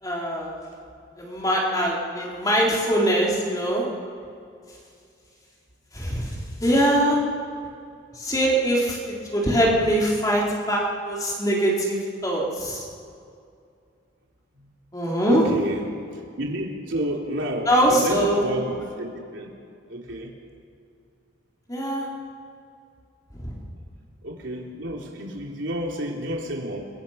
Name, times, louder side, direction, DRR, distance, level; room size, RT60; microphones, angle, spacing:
voice 1, 0.0-0.5 1.2-3.9 5.9-7.2 8.1-12.0 12.2-12.8 14.9-15.5 17.7-18.5 21.7-22.1 23.3-23.6, right 1 dB, 20° left, -3 dB, 4.0 m, -22 dB
voice 2, 15.3-15.9 16.4-19.5 19.9-20.3 24.2-26.8, equal, 70° right, 0 dB, 3.6 m, -30 dB
29.5 x 23.5 x 5.9 m, 2.4 s
head